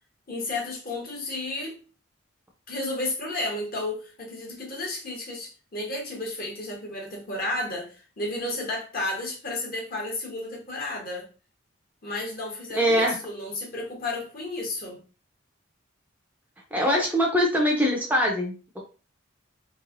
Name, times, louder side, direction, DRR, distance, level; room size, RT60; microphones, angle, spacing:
voice 1, 0.3-1.8 2.7-7.9 8.2-11.3 12.0-15.0, left 2 dB, 45° left, 1.0 m, -32 dB
voice 2, 12.8-13.2 16.7-18.8, equal, 10° right, 0.5 m, -23 dB
3.1 x 2.9 x 2.5 m
head